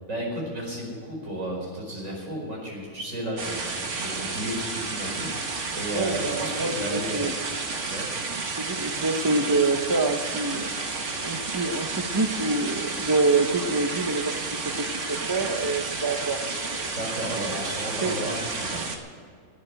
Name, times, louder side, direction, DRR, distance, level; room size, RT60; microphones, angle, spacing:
voice 1, 0.1-7.3 7.9-8.1 16.9-18.9, right 1 dB, 85° right, -2 dB, 5.2 m, -33 dB
sound 1, 3.4-19.0, right 4 dB, 70° right, 1.8 m, -31 dB
voice 2, 5.9-7.3 8.5-10.7 11.2-16.4 18.0-18.3, right 3 dB, 20° right, 7 dB, 0.7 m, -26 dB
18.0 x 7.9 x 7.6 m, 2.2 s
omnidirectional pair, 1.3 m